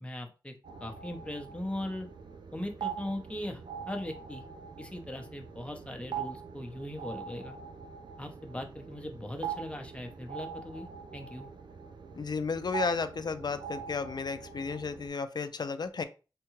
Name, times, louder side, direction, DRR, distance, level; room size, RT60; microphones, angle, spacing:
voice 1, 0.0-0.5 0.8-2.1 2.5-4.4 4.8-7.6 8.2-10.9 11.1-11.5, left 1 dB, 15° left, 4 dB, 0.7 m, -39 dB
sound 1, 0.6-15.1, right 7 dB, 65° right, 0.4 m, -43 dB
voice 2, 12.2-16.0, left 4 dB, 55° left, 11 dB, 0.4 m, -33 dB
3.6 x 2.2 x 3.0 m, 0.32 s
wide cardioid pair, 80°, 8 cm